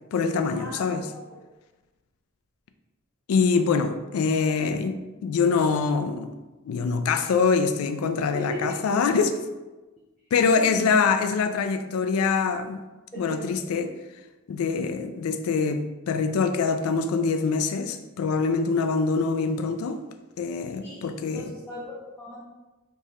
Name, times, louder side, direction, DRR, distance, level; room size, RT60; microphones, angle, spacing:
voice 1, 0.1-1.1 3.3-6.3 6.7-9.3 10.3-12.8 13.2-13.9 14.5-20.0 20.4-21.5, left 5 dB, 85° left, 9 dB, 0.3 m, -24 dB
voice 2, 13.1-13.7 20.8-21.1 21.3-22.4, left 1 dB, 5° left, -8 dB, 0.5 m, -38 dB
3.4 x 2.8 x 3.0 m, 1.1 s
head